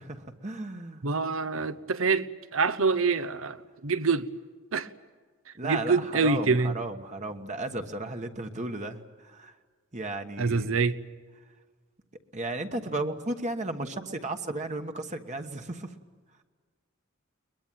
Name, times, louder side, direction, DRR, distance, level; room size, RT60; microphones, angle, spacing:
voice 1, 0.0-1.0 5.6-9.5 9.9-10.7 12.3-15.9, right 2 dB, 35° right, 1.3 m, -34 dB
voice 2, 1.0-4.3 4.7-4.9 5.6-6.7 10.4-11.0, right 4 dB, 75° right, 1.0 m, -26 dB
22.5 x 21.5 x 9.1 m
head